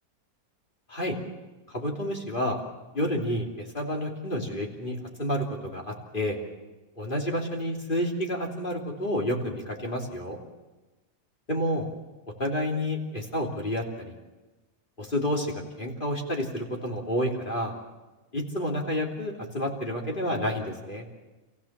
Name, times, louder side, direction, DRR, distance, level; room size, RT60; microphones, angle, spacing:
voice 1, 1.7-2.6 2.9-6.4 7.0-10.4 11.5-11.9 12.4-14.1 15.0-17.7 18.3-21.0, equal, 35° left, 0 dB, 3.3 m, -30 dB
28.0 x 16.0 x 7.4 m, 1.2 s
omnidirectional pair, 1.5 m